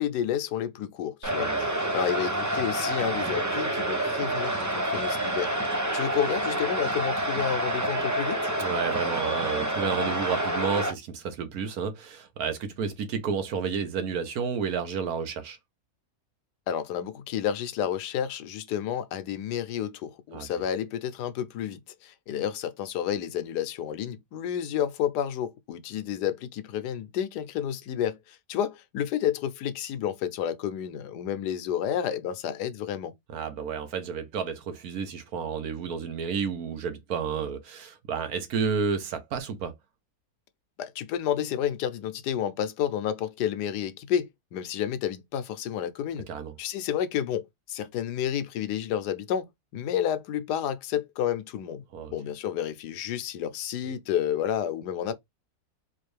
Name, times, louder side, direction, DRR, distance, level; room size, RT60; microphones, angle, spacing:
voice 1, 0.0-5.5 5.9-8.5 16.7-33.1 40.8-46.3 46.6-51.8 52.1-55.1, left 9 dB, 90° left, 1.2 m, -30 dB
sound 1, 1.2-10.9, right 1 dB, 25° right, 0.3 m, -28 dB
voice 2, 8.6-15.6 20.3-20.5 33.3-39.7 46.3-46.5 51.9-52.1, right 6 dB, 70° right, 1.3 m, -31 dB
4.4 x 2.5 x 3.2 m
omnidirectional pair, 1.7 m